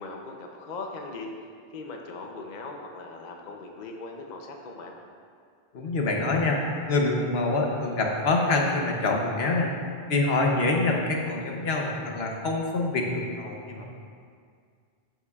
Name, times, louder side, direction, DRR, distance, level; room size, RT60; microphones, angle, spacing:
voice 1, 0.0-1.5 1.7-4.9, left 3 dB, 50° left, 2 dB, 0.7 m, -39 dB
voice 2, 5.7-9.7 10.1-13.9, left 2 dB, 80° left, 0 dB, 1.1 m, -26 dB
13.0 x 5.6 x 2.4 m, 2.1 s
omnidirectional pair, 1.0 m